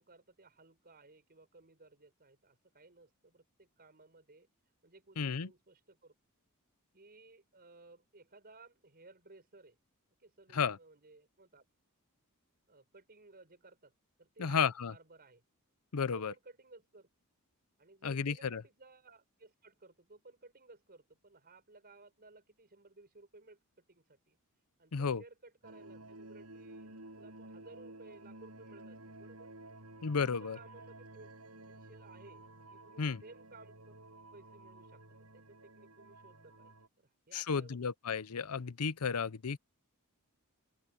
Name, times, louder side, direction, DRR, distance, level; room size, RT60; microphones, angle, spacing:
voice 1, 0.0-4.5 4.8-6.2 6.9-9.8 10.2-11.7 12.7-15.4 16.1-17.1 17.8-24.4 24.8-29.5 30.2-31.4 31.7-32.4 32.7-33.9 34.3-37.8, right 3 dB, 45° right, 5.3 m, -58 dB
voice 2, 5.2-5.5 10.5-10.8 14.4-14.9 15.9-16.3 18.0-18.6 24.9-25.2 30.0-30.6 33.0-33.2 37.3-39.6, left 6 dB, 85° left, 0.7 m, -33 dB
sound 1, 25.6-36.9, right 2 dB, 75° right, 6.6 m, -53 dB
open air
head